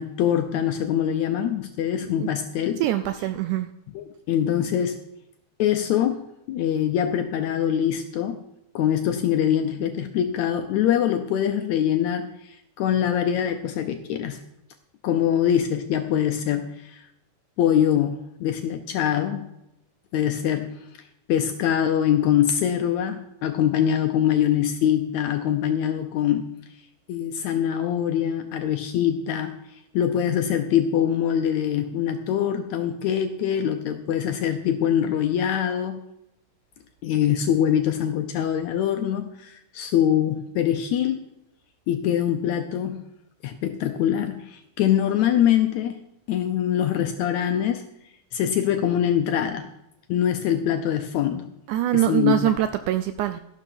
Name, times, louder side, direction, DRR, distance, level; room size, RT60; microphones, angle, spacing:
voice 1, 0.0-2.8 4.0-5.0 5.6-6.2 6.5-8.4 8.8-14.4 15.0-17.0 17.6-19.5 20.1-20.9 21.3-26.4 27.1-29.6 29.9-36.0 37.0-41.2 41.9-43.1 43.4-46.0 46.3-47.8 48.3-49.7 50.1-51.5 51.9-52.5, left 10 dB, 75° left, 6 dB, 1.7 m, -23 dB
voice 2, 2.8-3.7 51.7-53.4, right 13 dB, 80° right, 10 dB, 1.8 m, -23 dB
13.0 x 11.5 x 4.3 m, 0.86 s
omnidirectional pair, 3.9 m